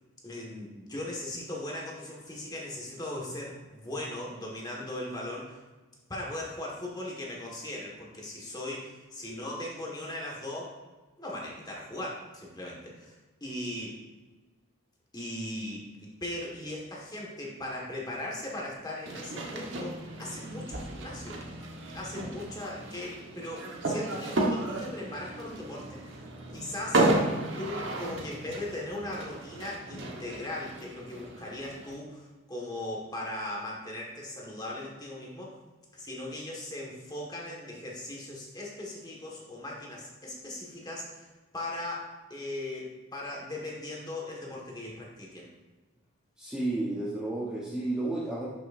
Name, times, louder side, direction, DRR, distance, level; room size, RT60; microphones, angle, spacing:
voice 1, 0.2-5.6 6.1-10.8 11.2-13.2 13.4-14.0 15.1-21.6 21.9-26.2 26.5-27.1 27.6-35.6 35.9-41.3 41.5-45.5, left 1 dB, 20° left, -3 dB, 1.6 m, -38 dB
sound 1, 19.1-32.0, right 2 dB, 60° right, 1.2 m, -33 dB
voice 2, 46.4-48.5, right 2 dB, 5° right, -6 dB, 1.0 m, -32 dB
11.5 x 6.2 x 2.6 m, 1.2 s
head